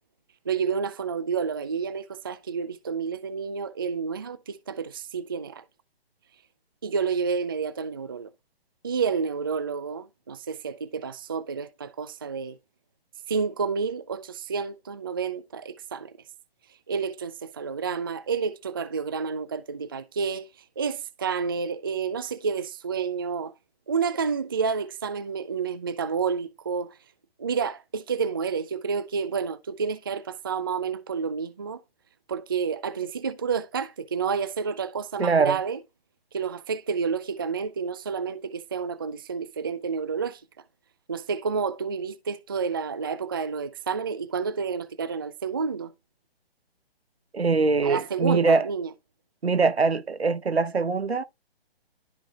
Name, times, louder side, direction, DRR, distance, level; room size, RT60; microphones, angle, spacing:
voice 1, 0.5-5.6 6.8-8.3 8.8-12.6 13.3-16.1 16.9-20.5 20.8-23.5 23.9-27.0 27.4-31.8 32.3-35.8 36.3-40.4 41.1-45.9 47.8-48.9, right 5 dB, 25° right, 0.3 m, -29 dB
voice 2, 35.2-35.6 47.3-48.7 49.4-51.2, right 4 dB, 85° right, 1.0 m, -22 dB
13.0 x 4.7 x 2.4 m
figure-of-eight pair, 140°, 31 cm